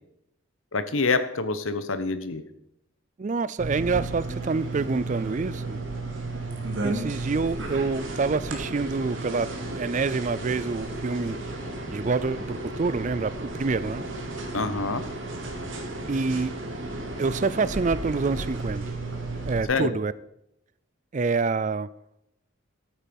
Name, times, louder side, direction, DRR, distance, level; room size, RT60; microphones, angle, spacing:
voice 1, 0.7-2.4 14.5-15.0 19.7-19.9, left 3 dB, 75° left, 12 dB, 1.1 m, -26 dB
voice 2, 3.2-5.8 6.8-11.4 11.9-14.0 16.1-16.5 17.2-18.8 19.5-20.1 21.1-21.9, right 4 dB, 35° right, 17 dB, 0.4 m, -27 dB
sound 1, 3.6-19.6, right 2 dB, 65° right, 2.3 m, -33 dB
13.5 x 8.9 x 5.4 m, 0.81 s
head